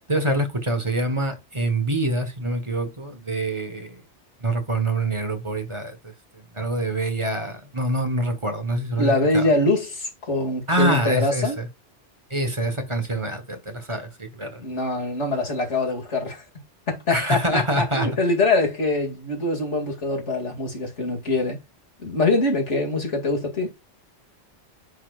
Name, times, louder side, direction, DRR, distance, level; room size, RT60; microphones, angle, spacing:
voice 1, 0.1-3.9 4.4-6.0 6.5-9.5 10.7-11.7 12.3-14.6 17.1-18.1, right 1 dB, 25° right, 1.3 m, -25 dB
voice 2, 9.0-11.6 14.6-16.4 16.9-21.6 22.0-23.7, left 2 dB, 75° left, 2.8 m, -23 dB
9.6 x 4.3 x 2.4 m
omnidirectional pair, 1.2 m